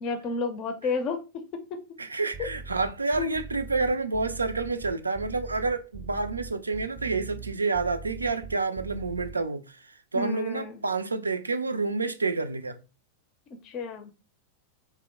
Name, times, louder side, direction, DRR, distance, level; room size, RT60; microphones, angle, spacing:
voice 1, 0.0-1.8 2.4-2.5 3.2-3.3 10.1-10.8 13.6-14.1, left 4 dB, 35° left, 0.5 m, -31 dB
voice 2, 2.0-9.8 10.1-12.8, right 3 dB, 80° right, 0.3 m, -29 dB
sound 1, 2.3-9.3, right 4 dB, 20° right, 0.5 m, -41 dB
2.8 x 2.1 x 3.6 m
figure-of-eight pair, 90°, 0 cm